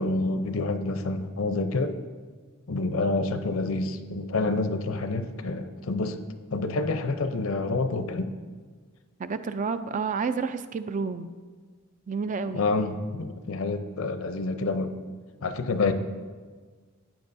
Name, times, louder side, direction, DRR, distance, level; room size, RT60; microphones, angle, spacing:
voice 1, 0.0-2.0 2.7-6.2 6.5-8.3 12.5-15.0 15.4-15.9, left 3 dB, 70° left, 9 dB, 0.6 m, -28 dB
voice 2, 9.2-11.3 12.1-12.7, right 5 dB, 35° right, 11 dB, 0.3 m, -30 dB
14.0 x 8.8 x 2.6 m, 1.5 s
head